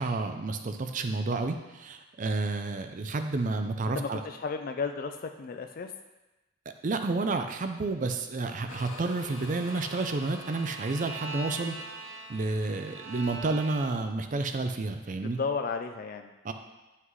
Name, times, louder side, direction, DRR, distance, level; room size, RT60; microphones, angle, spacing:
voice 1, 0.0-4.2 6.8-11.8 12.3-15.4 16.4-16.5, right 3 dB, 40° right, 7 dB, 0.4 m, -30 dB
voice 2, 3.9-5.9 15.2-16.3, left 5 dB, 45° left, 6 dB, 0.3 m, -33 dB
sound 1, 8.7-14.1, left 2 dB, 70° left, 0.7 m, -50 dB
Bowed string instrument, 9.1-14.2, right 3 dB, 60° right, 1.0 m, -43 dB
9.6 x 5.7 x 3.1 m, 1.1 s
head